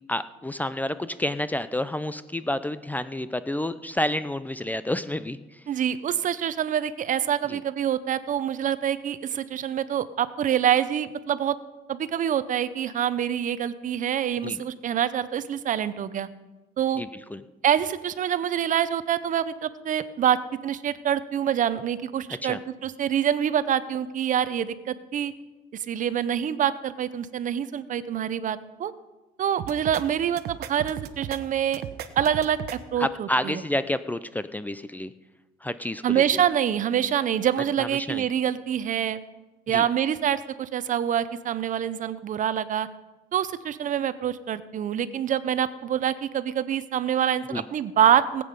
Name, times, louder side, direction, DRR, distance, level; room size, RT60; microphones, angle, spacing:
voice 1, 0.1-5.6 7.5-7.6 14.4-14.6 17.0-17.4 22.4-22.6 33.0-35.1 35.6-36.4 37.8-38.3 39.7-39.9 47.5-47.6, left 1 dB, 10° left, 13 dB, 0.5 m, -29 dB
voice 2, 5.7-11.6 11.9-16.3 16.8-17.0 17.6-25.3 25.9-28.9 29.4-31.8 32.2-33.6 36.0-39.2 39.7-42.9 43.3-48.4, right 9 dB, 50° right, 14 dB, 0.8 m, -26 dB
sound 1, 29.6-30.0 30.4-31.4 31.7-32.8, right 11 dB, 70° right, 1.0 m, -36 dB
18.5 x 8.6 x 5.3 m, 1.1 s
cardioid pair, 110°, 17 cm